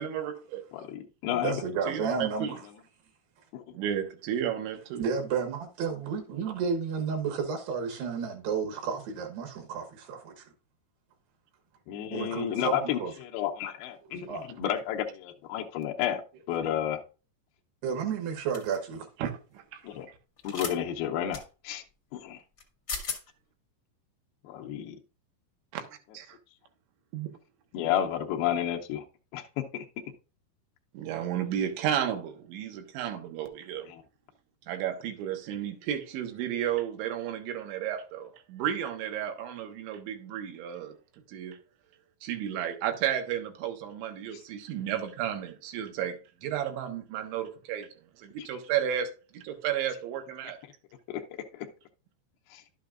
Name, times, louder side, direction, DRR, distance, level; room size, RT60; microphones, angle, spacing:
voice 1, 0.0-0.6 1.9-2.6 3.8-5.0 19.2-19.4 19.7-19.8 25.7-25.8 26.2-26.3 27.1-27.3 31.0-33.9 34.7-40.9 41.3-41.6 42.2-47.9 48.2-50.6, right 10 dB, 85° right, 3.4 m, -33 dB
voice 2, 0.7-1.6 3.5-3.8 11.9-14.3 14.6-16.2 16.5-17.0 19.8-20.1 20.4-21.8 22.1-22.4 24.4-25.0 27.7-29.0 29.3-29.9 33.9-34.0 44.3-44.4 48.4-48.5 51.1-51.2 52.5-52.6, left 10 dB, 80° left, 2.2 m, -31 dB
voice 3, 1.3-2.6 5.0-10.5 12.1-13.1 14.3-14.5 17.8-19.1, right 6 dB, 70° right, 3.0 m, -32 dB
sound 1, 18.5-18.8 20.4-20.7 21.3-21.4 22.6-22.7 22.9-23.2, left 5 dB, 65° left, 1.0 m, -35 dB
11.5 x 8.4 x 2.4 m
omnidirectional pair, 5.2 m